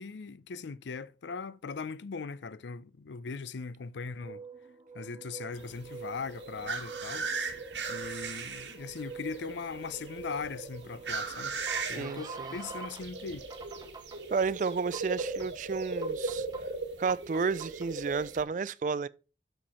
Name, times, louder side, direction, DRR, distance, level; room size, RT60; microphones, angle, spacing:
voice 1, 0.0-4.4 4.9-7.3 7.9-11.6 11.9-13.4, left 5 dB, 80° left, 0.5 m, -39 dB
sound 1, 4.0-13.0 13.5-14.2 14.7-15.5 16.0-16.6 17.1-17.9, right 5 dB, 20° right, 0.7 m, -46 dB
sound 2, 5.6-18.4, right 4 dB, 85° right, 1.4 m, -38 dB
voice 2, 11.8-12.6 14.3-16.5 17.0-19.1, right 5 dB, 45° right, 0.3 m, -32 dB
12.0 x 4.5 x 4.3 m
head